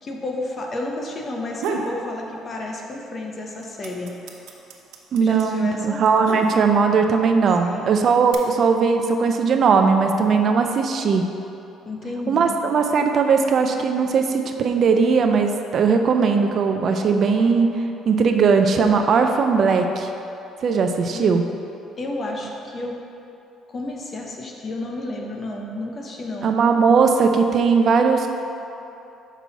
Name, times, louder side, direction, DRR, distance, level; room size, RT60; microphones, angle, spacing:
voice 1, 0.0-4.2 5.2-6.0 7.6-8.0 11.8-12.6 21.1-21.3 22.0-22.9 23.7-26.6, left 2 dB, 35° left, 0 dB, 0.9 m, -31 dB
sound 1, 1.3-2.0 2.4-3.1 3.3-7.0 7.7-8.3, right 4 dB, 85° right, 0.7 m, -31 dB
voice 2, 5.1-11.3 12.3-20.1 20.6-21.4 26.4-28.3, right 5 dB, 50° right, 5 dB, 0.4 m, -19 dB
6.1 x 5.5 x 4.1 m, 2.8 s
cardioid pair, 115°, 0 cm